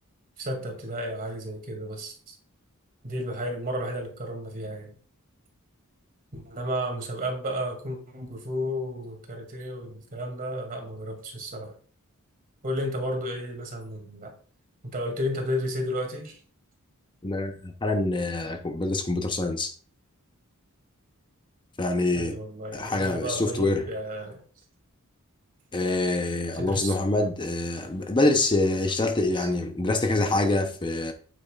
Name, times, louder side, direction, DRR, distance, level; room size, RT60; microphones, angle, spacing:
voice 1, 0.4-2.4 3.0-4.9 6.3-11.7 12.6-14.3 14.9-16.3 22.2-24.4 26.5-27.0 29.3-29.5, equal, 40° right, 2.2 m, -32 dB
voice 2, 17.2-19.7 21.8-22.4 22.7-23.9 25.7-31.1, left 2 dB, 20° left, 0.6 m, -25 dB
8.6 x 8.5 x 2.3 m
head